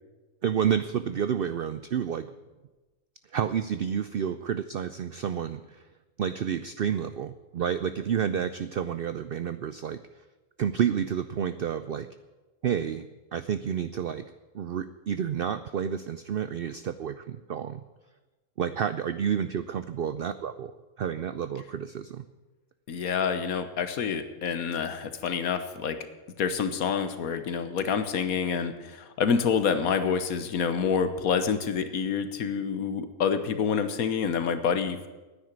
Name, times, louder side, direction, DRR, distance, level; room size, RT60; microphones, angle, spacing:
voice 1, 0.4-2.3 3.3-5.8 6.2-10.0 10.6-12.1 12.6-14.3 14.5-17.8 18.6-20.7 21.0-22.3, right 8 dB, 80° right, 12 dB, 0.5 m, -30 dB
voice 2, 22.9-26.0 26.4-35.1, left 6 dB, 75° left, 10 dB, 1.4 m, -27 dB
9.9 x 9.5 x 9.5 m, 1.2 s
omnidirectional pair, 1.5 m